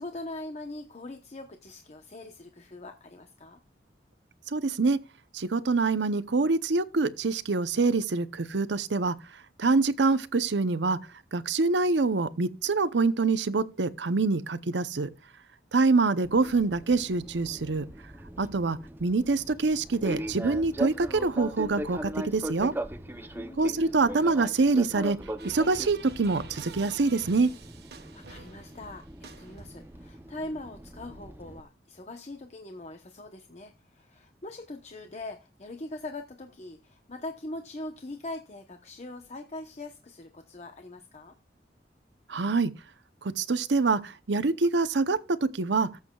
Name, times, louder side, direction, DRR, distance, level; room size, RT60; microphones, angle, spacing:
voice 1, 0.0-3.6 23.0-23.8 28.1-41.3, left 2 dB, 40° left, 0.9 m, -42 dB
voice 2, 4.5-5.0 5.3-11.0 11.3-15.1 15.7-17.9 18.4-22.7 23.6-25.2 25.4-27.5 42.3-42.7 43.2-45.9, right 3 dB, 85° right, 0.7 m, -25 dB
Fixed-wing aircraft airplane, 16.2-31.6, right 1 dB, 10° right, 0.6 m, -40 dB
sound 1, 25.4-30.1, right 4 dB, 65° right, 1.4 m, -47 dB
17.5 x 8.1 x 2.3 m
head